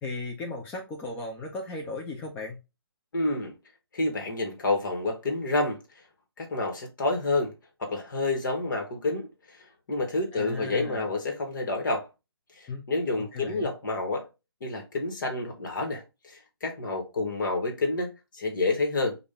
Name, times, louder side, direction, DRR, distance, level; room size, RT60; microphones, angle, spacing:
voice 1, 0.0-2.6 10.3-11.1 12.7-12.8 13.1-13.7, left 3 dB, 15° left, 0.6 m, -36 dB
voice 2, 3.1-3.5 3.9-5.8 6.4-7.5 7.8-12.1 12.6-14.3 14.6-19.2, left 2 dB, 50° left, 1.6 m, -29 dB
5.1 x 2.6 x 3.4 m
figure-of-eight pair, 140°, 13 cm